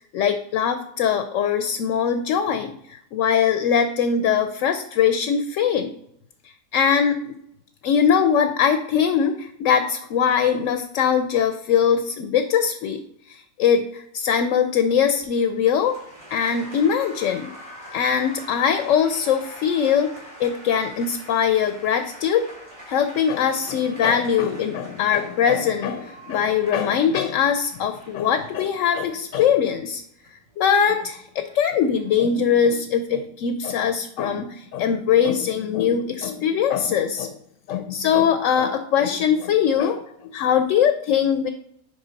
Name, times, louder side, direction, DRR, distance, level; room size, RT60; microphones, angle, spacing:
voice 1, 0.1-5.9 6.7-7.3 7.8-13.0 13.3-16.0 16.3-17.5 17.9-20.1 20.4-22.4 22.9-30.0 30.6-37.3 37.7-41.5, left 7 dB, 75° left, 8 dB, 0.9 m, -21 dB
Applause, 15.2-32.3, equal, 55° right, 3.6 m, -45 dB
10.0 x 3.7 x 4.0 m, 0.73 s
omnidirectional pair, 1.4 m